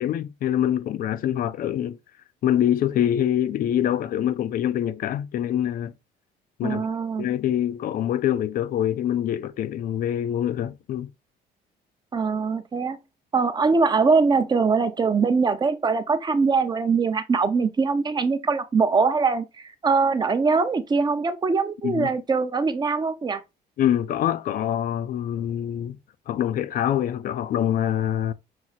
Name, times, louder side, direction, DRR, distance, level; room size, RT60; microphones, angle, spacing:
voice 1, 0.0-2.0 2.4-5.9 6.6-6.9 7.2-11.1 21.8-22.1 23.8-26.0 26.3-28.3, left 10 dB, 55° left, 0.4 m, -25 dB
voice 2, 6.6-7.3 12.1-13.0 13.3-23.4, right 4 dB, 25° right, 0.6 m, -22 dB
6.1 x 2.0 x 3.9 m
cardioid pair, 110°, 17 cm